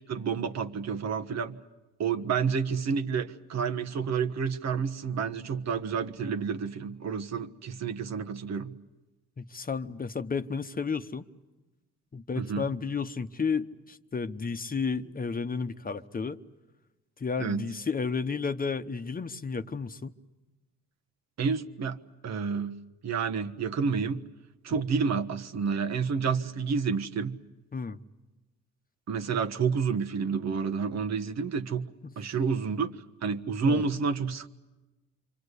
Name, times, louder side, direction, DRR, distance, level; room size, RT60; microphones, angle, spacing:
voice 1, 0.0-1.6 2.0-8.8 12.4-12.7 17.4-17.6 21.4-22.8 23.0-24.2 24.6-27.4 29.1-31.9 32.2-32.9 33.2-34.5, right 5 dB, 60° right, 1.4 m, -29 dB
voice 2, 9.4-11.3 12.1-16.4 17.2-20.1 27.7-28.0 32.0-32.1 33.6-33.8, left 5 dB, 30° left, 1.0 m, -32 dB
28.0 x 25.0 x 8.3 m
cardioid pair, 90°, 30 cm